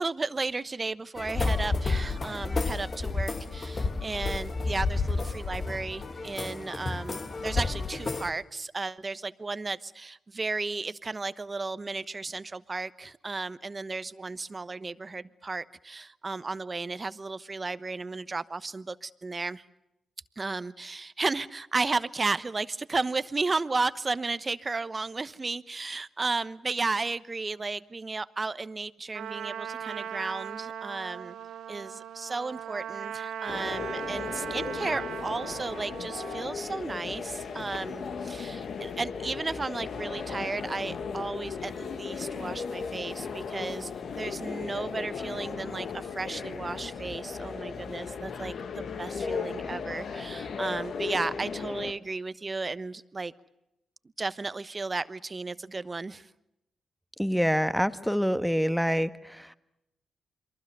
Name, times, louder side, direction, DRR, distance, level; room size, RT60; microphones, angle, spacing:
voice 1, 0.0-19.6 20.4-31.4 31.7-43.9 44.1-53.3 54.2-56.3, right 3 dB, 35° right, 15 dB, 1.0 m, -34 dB
sound 1, 1.2-8.3, left 3 dB, 45° left, 2.0 m, -31 dB
Trumpet, 29.1-36.5, right 9 dB, 80° right, 1.2 m, -38 dB
sound 2, 33.5-51.9, left 5 dB, 65° left, 1.7 m, -36 dB
voice 2, 57.2-59.5, equal, ahead, 12 dB, 1.4 m, -26 dB
28.5 x 23.0 x 6.8 m, 0.85 s
supercardioid pair, 45°, 0 cm